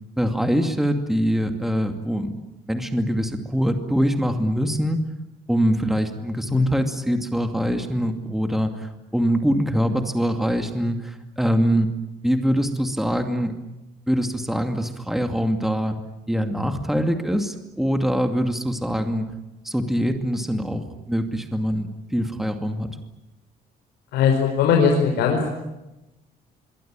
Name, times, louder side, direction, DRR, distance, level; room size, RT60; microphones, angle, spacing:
voice 1, 0.2-5.0 5.5-11.9 12.2-13.5 14.1-16.0 16.3-19.3 19.6-22.9, equal, ahead, 6 dB, 2.5 m, -23 dB
voice 2, 24.1-25.5, left 6 dB, 80° left, 1 dB, 5.2 m, -19 dB
26.0 x 23.5 x 9.0 m, 0.98 s
cardioid pair, 110°, 17 cm